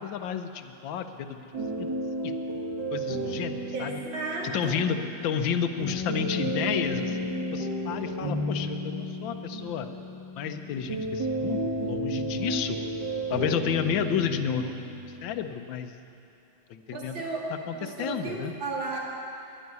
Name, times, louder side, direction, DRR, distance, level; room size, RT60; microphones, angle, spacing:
voice 1, 0.0-2.3 2.9-4.0 4.5-5.0 5.2-7.2 7.5-9.9 10.4-12.8 13.3-14.9 15.2-15.9 16.7-17.2 17.7-18.5, left 7 dB, 75° left, 8 dB, 1.5 m, -31 dB
sound 1, 1.5-15.3, right 1 dB, 65° right, 2.9 m, -33 dB
voice 2, 3.7-5.0 16.9-17.5 17.7-19.0, right 3 dB, 80° right, -3 dB, 3.1 m, -34 dB
11.5 x 11.5 x 9.5 m, 2.7 s
omnidirectional pair, 2.1 m